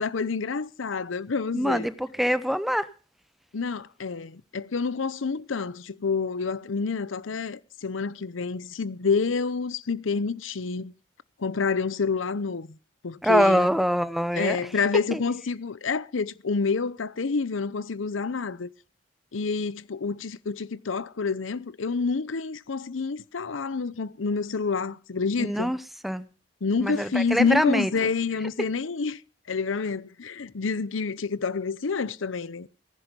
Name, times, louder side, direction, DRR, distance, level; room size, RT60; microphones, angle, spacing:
voice 1, 0.0-1.9 3.5-10.9 11.4-12.8 13.0-13.7 14.3-18.7 19.3-25.7 26.6-29.2 29.5-32.7, left 4 dB, 90° left, 0.7 m, -28 dB
voice 2, 1.5-2.9 13.2-14.6 15.1-15.2 25.4-25.8 26.0-26.2 26.8-28.1, equal, ahead, 0.7 m, -24 dB
19.0 x 10.5 x 5.2 m
head